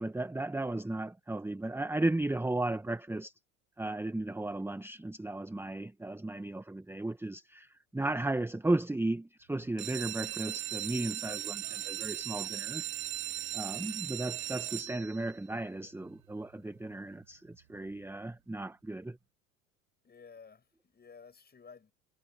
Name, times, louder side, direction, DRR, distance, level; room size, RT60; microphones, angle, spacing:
voice 1, 0.0-3.3 3.8-12.8 13.5-19.2, right 2 dB, 5° right, 1.4 m, -35 dB
sound 1, 9.7-15.4 16.0-16.5 16.9-17.0 17.2-17.3 17.8-17.9, right 12 dB, 80° right, 1.3 m, -38 dB
voice 2, 11.0-11.9 12.3-12.6 13.2-13.4 20.0-21.9, left 5 dB, 25° left, 5.6 m, -55 dB
hypercardioid pair, 75°, 41 cm